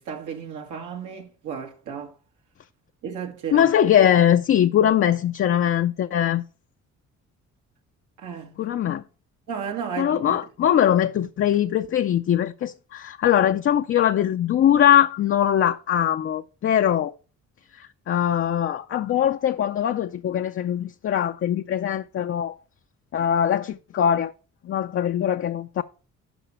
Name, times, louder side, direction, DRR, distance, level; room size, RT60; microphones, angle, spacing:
voice 1, 0.0-2.1 3.0-3.7 8.2-8.6 9.5-10.4, right 7 dB, 80° right, 2.0 m, -33 dB
voice 2, 3.5-6.4 8.6-9.0 10.0-17.1 17.7-22.6 23.1-24.3 24.6-25.8, left 10 dB, 45° left, 0.5 m, -21 dB
12.0 x 4.9 x 4.3 m
cardioid pair, 90°, 30 cm